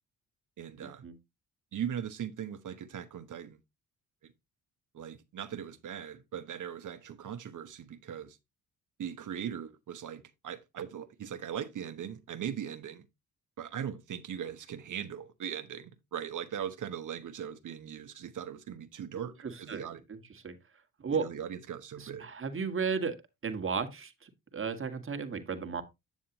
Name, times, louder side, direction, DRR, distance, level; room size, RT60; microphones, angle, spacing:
voice 1, 0.6-1.0 1.7-3.6 4.2-4.3 4.9-8.4 9.0-13.0 13.6-20.0 21.1-22.3, right 9 dB, 55° right, 1.1 m, -39 dB
voice 2, 19.4-20.2 20.4-20.5 21.0-21.3 22.0-23.2 23.4-25.8, right 5 dB, 35° right, 1.6 m, -34 dB
8.3 x 7.2 x 2.9 m
supercardioid pair, 65°, 36 cm